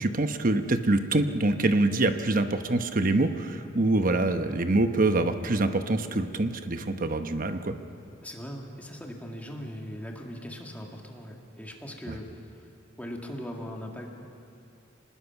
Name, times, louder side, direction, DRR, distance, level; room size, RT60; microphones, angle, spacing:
voice 1, 0.0-7.8 12.1-12.2, right 2 dB, 45° right, 8 dB, 1.0 m, -25 dB
voice 2, 8.2-12.3 12.5-12.7 13.0-14.1, equal, 10° left, 0 dB, 2.0 m, -39 dB
25.5 x 20.0 x 5.9 m, 2.7 s
head